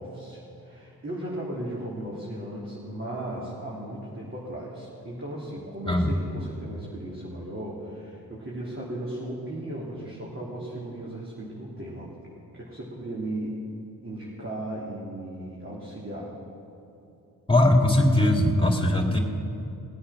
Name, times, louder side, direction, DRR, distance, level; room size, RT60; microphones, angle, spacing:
voice 1, 0.0-12.1 12.5-13.6 14.0-16.4, right 1 dB, 35° right, -6 dB, 3.5 m, -36 dB
voice 2, 17.5-19.2, left 1 dB, 15° left, 2 dB, 2.7 m, -20 dB
19.0 x 8.7 x 6.0 m, 2.8 s
supercardioid pair, 40°, 38 cm